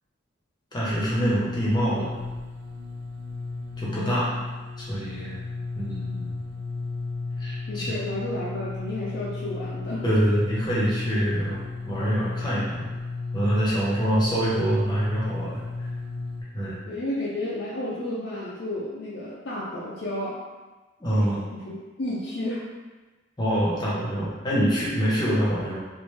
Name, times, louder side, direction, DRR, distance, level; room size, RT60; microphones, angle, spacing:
voice 1, 0.7-2.1 3.8-4.3 4.8-5.4 5.7-6.3 7.4-7.9 10.0-12.9 13.3-15.9 16.5-16.8 21.0-21.4 23.4-25.8, equal, 20° left, -7 dB, 0.8 m, -25 dB
sound 1, 0.8-16.4, left 3 dB, 75° right, 0.7 m, -34 dB
voice 2, 4.0-4.3 7.7-10.0 14.1-14.2 16.8-20.4 21.1-22.6, left 1 dB, 60° left, -7 dB, 0.5 m, -32 dB
3.1 x 2.5 x 3.2 m, 1.2 s
head